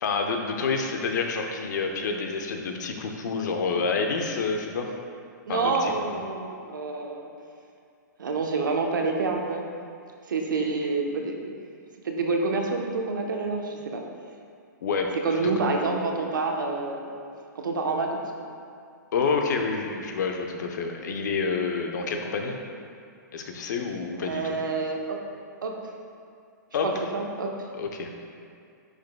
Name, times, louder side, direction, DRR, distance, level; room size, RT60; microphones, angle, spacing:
voice 1, 0.0-4.9 5.5-5.9 14.8-15.8 19.1-22.6 23.3-24.6 26.7-27.1 27.7-28.1, left 4 dB, 65° left, 3 dB, 0.8 m, -28 dB
voice 2, 5.5-7.3 8.2-9.7 10.3-11.5 12.0-14.0 15.2-17.1 17.5-18.2 24.2-25.2 25.6-25.7 27.1-27.5, right 3 dB, 80° right, 1 dB, 0.9 m, -27 dB
10.0 x 5.4 x 2.3 m, 2.4 s
hypercardioid pair, 130°, 10 cm